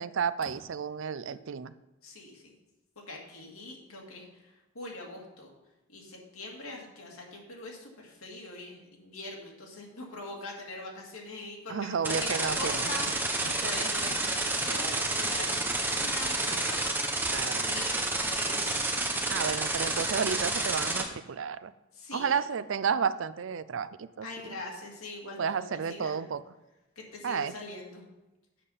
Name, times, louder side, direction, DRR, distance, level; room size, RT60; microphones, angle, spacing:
voice 1, 0.0-1.7 11.7-12.9 13.4-13.7 17.3-17.7 19.3-21.7 22.1-24.3 25.4-26.4 27.2-27.5, right 6 dB, 65° right, 15 dB, 0.4 m, -32 dB
voice 2, 2.0-2.5 3.1-4.3 4.7-5.5 5.9-17.2 17.5-18.0 18.3-18.9 21.9-22.4 24.2-26.3 27.0-28.0, left 2 dB, 85° left, -1 dB, 2.4 m, -42 dB
sound 1, 12.0-21.0, right 2 dB, 10° right, 0.9 m, -30 dB
8.4 x 7.1 x 5.6 m, 1.0 s
head